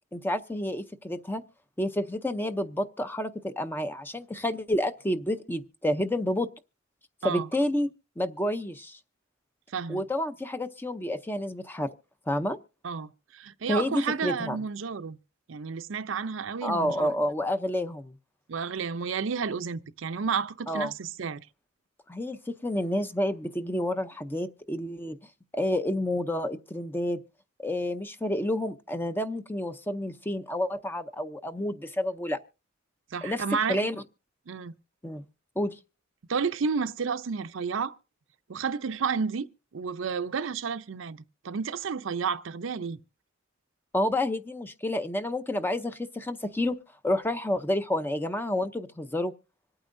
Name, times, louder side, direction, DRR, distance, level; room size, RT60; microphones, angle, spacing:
voice 1, 0.1-1.4 1.8-6.5 7.2-7.9 8.2-9.0 9.9-11.9 12.3-12.6 13.7-14.6 16.6-18.1 20.7-20.9 22.1-25.2 25.5-27.2 27.6-32.4 33.2-33.4 33.7-34.0 35.0-35.3 35.6-35.8 43.9-46.8 47.0-49.3, left 1 dB, 10° left, 0.5 m, -29 dB
voice 2, 9.7-10.0 12.8-15.2 15.5-17.1 18.5-21.5 33.1-33.8 34.5-34.7 36.3-37.9 38.5-39.5 39.7-43.0, right 5 dB, 70° right, 0.5 m, -31 dB
25.5 x 8.8 x 2.6 m
head